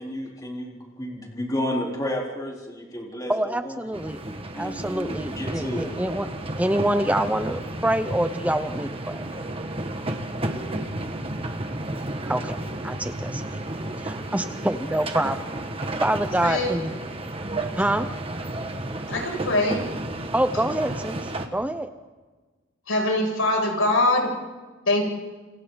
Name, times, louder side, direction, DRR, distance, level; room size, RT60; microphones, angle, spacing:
voice 1, 0.0-3.8 4.5-6.0, left 1 dB, 20° left, -2 dB, 3.9 m, -31 dB
voice 2, 3.3-4.2 4.6-6.3 6.6-9.2 12.3-12.6 12.8-13.6 14.0-15.4 16.0-17.0 17.8-18.1 20.3-21.2 21.5-21.9, right 1 dB, 5° right, 9 dB, 0.7 m, -26 dB
sound 1, 3.9-21.5, right 1 dB, 30° right, 1.6 m, -32 dB
voice 3, 16.4-16.7 19.1-19.8 22.9-24.3 24.9-25.1, left 2 dB, 85° left, 0 dB, 6.8 m, -22 dB
29.5 x 28.5 x 4.0 m, 1.3 s
head